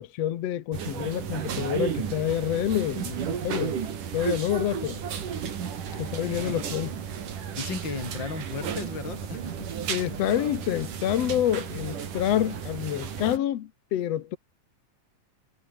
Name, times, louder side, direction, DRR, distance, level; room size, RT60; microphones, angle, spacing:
voice 1, 0.0-3.2 3.4-3.7 4.1-5.0 6.0-6.9 9.9-14.4, left 11 dB, 60° left, 2.0 m, -27 dB
sound 1, 0.7-13.4, right 8 dB, 75° right, 4.3 m, -33 dB
voice 2, 5.9-6.7 7.6-9.9, left 5 dB, 35° left, 3.7 m, -36 dB
omnidirectional pair, 3.7 m